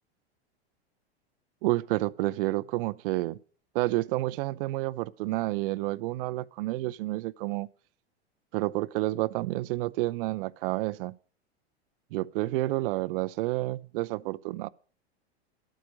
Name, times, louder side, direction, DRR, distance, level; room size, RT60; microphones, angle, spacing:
voice 1, 1.6-3.4 3.7-7.7 8.5-11.1 12.1-14.7, right 18 dB, 55° right, 0.7 m, -29 dB
12.0 x 8.8 x 5.1 m
hypercardioid pair, 95°, 33 cm